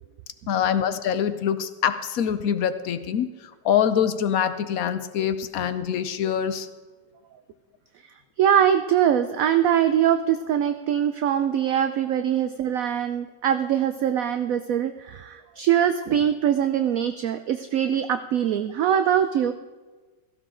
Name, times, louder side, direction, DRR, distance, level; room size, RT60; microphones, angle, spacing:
voice 1, 0.5-3.3 3.6-6.7, left 8 dB, 65° left, 11 dB, 1.0 m, -24 dB
voice 2, 8.4-19.5, right 9 dB, 70° right, 10 dB, 0.8 m, -22 dB
16.0 x 15.5 x 3.8 m, 1.3 s
omnidirectional pair, 1.9 m